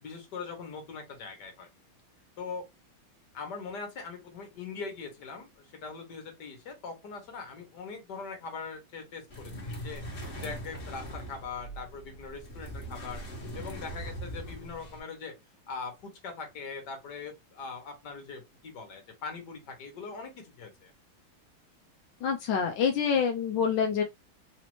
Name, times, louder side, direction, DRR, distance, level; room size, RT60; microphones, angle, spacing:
voice 1, 0.0-1.7 2.4-2.6 3.3-10.0 10.4-13.2 13.5-15.3 15.7-20.9, left 5 dB, 55° left, 1.7 m, -41 dB
sound 1, 9.3-15.0, right 1 dB, 30° left, 1.3 m, -41 dB
voice 2, 22.2-24.0, left 6 dB, 75° left, 1.1 m, -26 dB
4.1 x 2.8 x 3.0 m
omnidirectional pair, 2.3 m